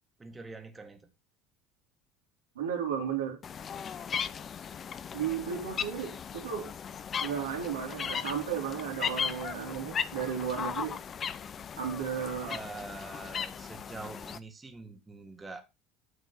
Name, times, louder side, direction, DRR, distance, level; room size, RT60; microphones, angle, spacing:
voice 1, 0.2-1.1 12.5-15.7, right 3 dB, 20° right, 1.9 m, -45 dB
voice 2, 2.5-3.4 5.1-6.7 7.2-11.0 11.8-12.6, right 8 dB, 90° right, 3.1 m, -34 dB
sound 1, 3.4-14.4, left 7 dB, 40° left, 0.8 m, -37 dB
10.0 x 6.0 x 4.3 m
hypercardioid pair, 70°, 0 cm